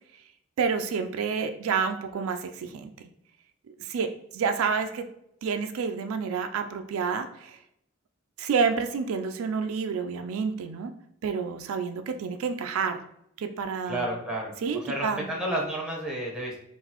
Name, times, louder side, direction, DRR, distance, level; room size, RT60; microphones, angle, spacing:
voice 1, 0.6-2.9 3.8-5.0 5.4-7.6 8.4-10.9 11.2-13.0 13.4-14.2 14.6-15.3, right 5 dB, 80° right, 7 dB, 0.3 m, -29 dB
voice 2, 13.9-14.5 14.9-16.6, right 1 dB, 5° right, -2 dB, 0.8 m, -31 dB
3.8 x 2.4 x 2.9 m, 0.77 s
head